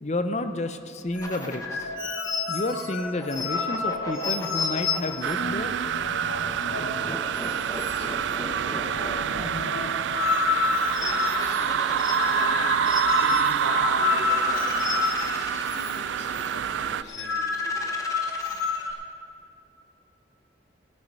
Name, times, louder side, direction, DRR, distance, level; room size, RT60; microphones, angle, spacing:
voice 1, 0.0-1.9 2.5-5.7, left 2 dB, 35° left, 9 dB, 0.6 m, -30 dB
sound 1, 1.1-7.1 7.4-7.5 7.8-8.3 8.6-16.0 16.2-16.5 16.9-18.9, left 5 dB, 90° left, 1.2 m, -29 dB
sound 2, 1.1-2.0 3.0-5.5 6.4-9.8 10.5-12.9 13.7-16.1 17.1-19.0, left 1 dB, 15° left, 1.0 m, -39 dB
sound 3, 5.2-17.0, right 8 dB, 75° right, 0.3 m, -27 dB
voice 2, 11.0-12.9 13.2-18.2, left 1 dB, 70° left, 0 dB, 2.1 m, -41 dB
17.5 x 9.1 x 5.4 m, 2.7 s
head